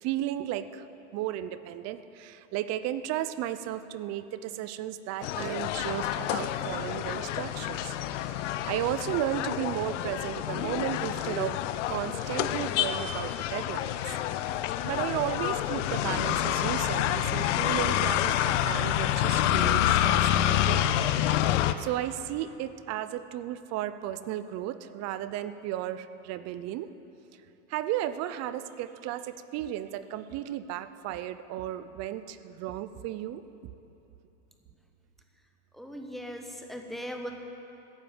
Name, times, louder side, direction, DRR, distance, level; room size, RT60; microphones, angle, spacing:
voice 1, 0.0-0.9 1.1-7.9 8.3-11.6 11.9-14.1 14.8-20.9 21.8-26.9 27.7-33.4, right 12 dB, 45° right, 14 dB, 0.6 m, -34 dB
sound 1, 5.2-21.7, left 12 dB, 85° left, 0.7 m, -28 dB
voice 2, 35.7-37.3, equal, ahead, 3 dB, 1.1 m, -39 dB
14.5 x 6.9 x 9.3 m, 2.8 s
supercardioid pair, 130°, 35 cm